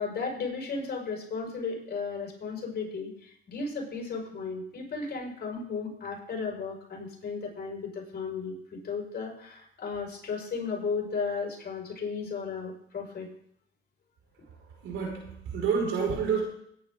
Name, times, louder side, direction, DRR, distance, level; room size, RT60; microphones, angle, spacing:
voice 1, 0.0-13.3, left 4 dB, 55° left, 0 dB, 5.6 m, -35 dB
voice 2, 14.8-16.4, right 6 dB, 85° right, 0 dB, 5.4 m, -28 dB
21.0 x 10.5 x 3.8 m, 0.70 s
cardioid pair, 90°, 20 cm